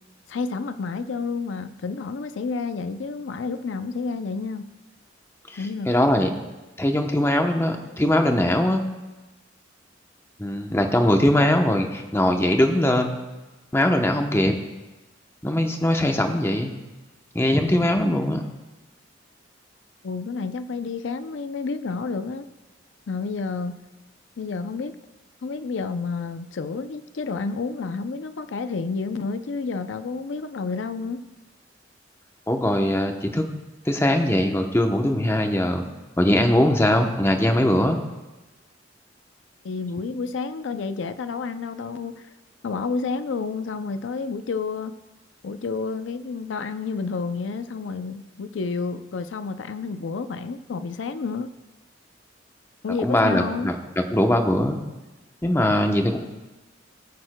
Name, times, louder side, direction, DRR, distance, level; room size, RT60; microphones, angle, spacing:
voice 1, 0.3-4.7 5.6-6.1 20.0-22.4 23.1-23.8 24.4-24.9 25.4-31.2 39.6-42.3 42.6-44.9 45.4-51.5 52.8-53.7, left 4 dB, 75° left, 11 dB, 0.5 m, -30 dB
voice 2, 5.5-6.3 6.8-8.8 10.4-13.2 13.7-14.5 15.4-16.7 17.3-18.4 32.5-33.4 33.9-35.8 36.2-38.0 53.0-54.8 55.4-56.2, left 1 dB, 15° left, 4 dB, 0.8 m, -21 dB
20.5 x 8.8 x 2.2 m, 1.1 s
head